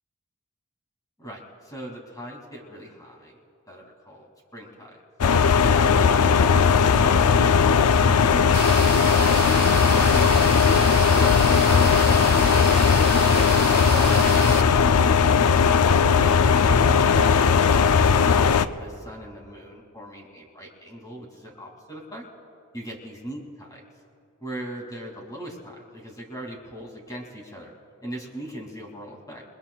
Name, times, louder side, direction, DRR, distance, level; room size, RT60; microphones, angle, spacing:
voice 1, 1.2-3.4 3.7-5.0 5.7-10.4 11.1-14.8 16.0-17.9 18.3-22.2 22.7-23.4 24.4-27.7 28.0-29.4, equal, 15° left, 0 dB, 2.5 m, -39 dB
sound 1, 5.2-18.7, left 6 dB, 90° left, 0.5 m, -18 dB
sound 2, 8.5-14.6, right 10 dB, 45° right, 0.4 m, -32 dB
28.5 x 21.0 x 2.4 m, 2.4 s
head